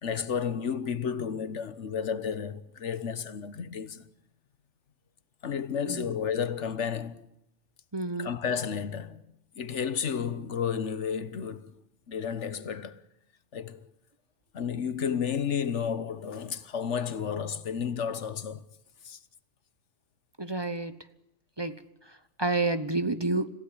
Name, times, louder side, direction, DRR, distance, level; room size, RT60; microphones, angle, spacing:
voice 1, 0.0-4.1 5.4-7.3 8.2-9.2 9.5-11.7 12.1-13.0 13.5-13.8 14.5-18.6 19.0-19.2, left 7 dB, 80° left, 1.5 m, -32 dB
voice 2, 7.9-8.3 20.4-20.9 21.6-21.8 22.4-23.5, right 2 dB, 25° right, 1.0 m, -29 dB
27.0 x 16.0 x 9.9 m
omnidirectional pair, 1.2 m